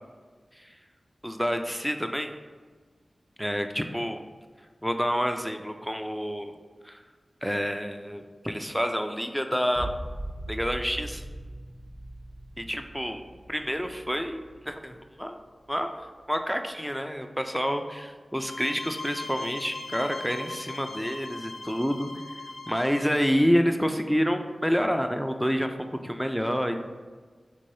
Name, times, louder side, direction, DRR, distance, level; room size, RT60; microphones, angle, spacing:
voice 1, 1.2-2.3 3.4-4.2 4.8-6.5 6.8-7.0 7.4-9.9 10.5-11.2 12.6-13.2 13.5-15.4 15.7-15.9 16.3-22.2 22.7-25.7 26.0-26.9, equal, ahead, 6 dB, 0.3 m, -28 dB
sound 1, 9.7-15.2 15.6-16.3, right 1 dB, 50° right, 0.8 m, -40 dB
sound 2, 18.4-23.3, left 3 dB, 75° left, 0.5 m, -40 dB
3.6 x 3.2 x 2.6 m, 1.5 s
cardioid pair, 45°, 0 cm